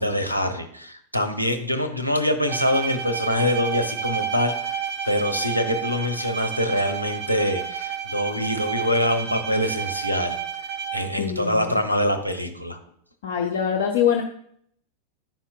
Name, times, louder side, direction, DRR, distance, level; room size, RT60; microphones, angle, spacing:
voice 1, 0.0-10.4 10.9-12.8, left 1 dB, 90° left, 7 dB, 0.7 m, -24 dB
Bowed string instrument, 2.5-11.2, right 8 dB, 50° right, 1.1 m, -31 dB
voice 2, 11.2-11.8 13.2-14.2, left 8 dB, 55° left, 3 dB, 0.7 m, -24 dB
10.5 x 5.7 x 2.4 m, 0.68 s
figure-of-eight pair, 90°, 0 cm